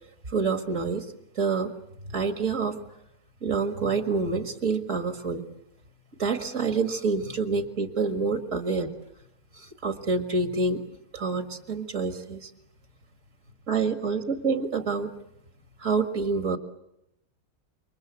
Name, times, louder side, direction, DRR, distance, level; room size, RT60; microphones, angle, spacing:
voice 1, 0.3-1.1 1.4-1.7 2.1-2.8 3.4-5.4 6.2-8.9 9.6-10.8 11.1-12.5 13.7-15.1 15.8-16.6, right 4 dB, 60° right, 7 dB, 2.1 m, -27 dB
28.0 x 24.0 x 8.2 m, 0.82 s
omnidirectional pair, 1.5 m